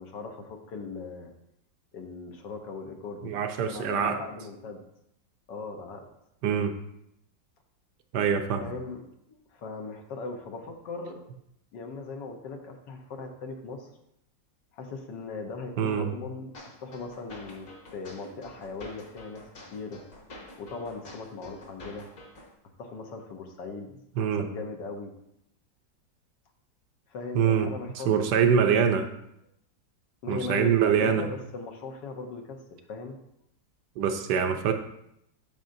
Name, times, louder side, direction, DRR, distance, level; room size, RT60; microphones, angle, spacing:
voice 1, 0.0-1.3 1.9-4.8 5.5-6.0 8.6-11.2 11.7-13.9 14.7-16.5 16.8-19.4 19.7-20.0 20.6-22.1 22.8-25.1 27.1-29.1 30.2-32.6 32.9-33.2, left 4 dB, 75° left, 4 dB, 1.5 m, -39 dB
voice 2, 3.2-4.2 6.4-6.7 8.1-8.6 15.8-16.1 24.2-24.4 27.3-27.7 28.0-29.0 30.3-31.3 34.0-34.7, right 7 dB, 70° right, 6 dB, 1.1 m, -24 dB
sound 1, 16.5-22.5, left 1 dB, 50° left, 1.7 m, -48 dB
8.9 x 6.4 x 2.6 m, 0.79 s
omnidirectional pair, 2.0 m